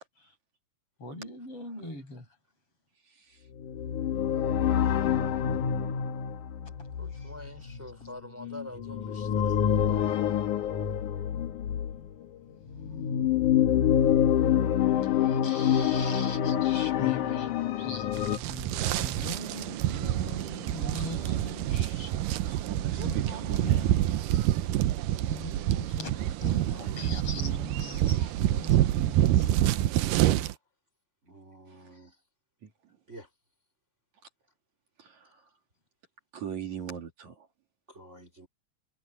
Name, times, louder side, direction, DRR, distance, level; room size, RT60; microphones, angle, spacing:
voice 1, 1.0-2.2 15.0-22.1 23.0-24.2 25.3-29.3, left 2 dB, 40° left, 7.2 m, -41 dB
voice 2, 3.0-3.5 5.0-5.5 10.2-10.4 14.4-14.6 21.5-24.1 31.7-32.0 32.6-33.0 35.0-35.5 36.3-37.5, right 8 dB, 60° right, 3.8 m, -43 dB
sound 1, 3.6-12.1 12.7-18.4, left 9 dB, 70° left, 2.8 m, -27 dB
voice 3, 7.0-9.6, left 1 dB, 5° right, 4.3 m, -45 dB
sound 2, 18.2-30.5, right 13 dB, 80° right, 2.4 m, -27 dB
voice 4, 25.7-26.5 28.3-29.8 31.2-32.2 33.1-33.3 37.9-38.5, right 1 dB, 20° right, 3.9 m, -52 dB
omnidirectional pair, 3.8 m